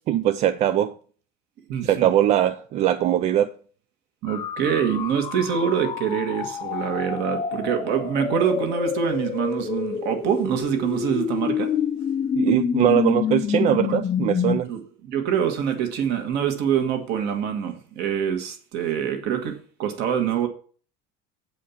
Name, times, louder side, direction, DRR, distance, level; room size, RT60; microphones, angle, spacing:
voice 1, 0.1-0.9 1.8-3.5 12.3-14.7, right 12 dB, 35° right, 0.4 m, -21 dB
voice 2, 1.7-2.1 4.2-11.7 13.8-14.0 14.7-20.5, right 8 dB, 50° right, 1.7 m, -25 dB
sound 1, 4.3-14.6, left 7 dB, 20° left, 0.6 m, -27 dB
8.3 x 5.0 x 7.1 m
cardioid pair, 180°, 21 cm